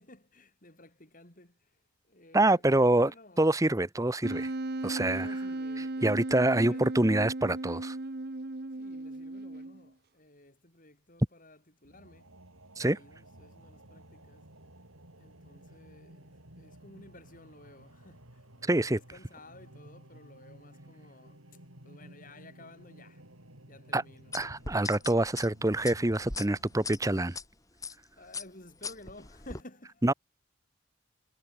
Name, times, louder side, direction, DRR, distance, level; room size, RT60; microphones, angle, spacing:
voice 1, 0.0-3.5 4.8-6.3 6.7-6.9 8.8-12.3 12.7-14.5 15.2-23.2 23.7-24.4 28.2-30.1, left 1 dB, 40° left, 5.7 m, -54 dB
voice 2, 2.3-3.1 3.4-4.5 4.8-5.3 6.0-8.0 12.8-13.0 18.7-19.0 23.9-24.0 24.3-27.4 30.0-30.1, right 1 dB, 15° right, 0.8 m, -26 dB
Wind instrument woodwind instrument, 4.2-9.9, right 2 dB, 50° right, 1.1 m, -36 dB
sound 1, 11.8-26.8, right 1 dB, 80° right, 6.1 m, -55 dB
sound 2, 24.3-27.4 27.8-28.0 28.3-29.6, left 4 dB, 15° left, 2.4 m, -40 dB
head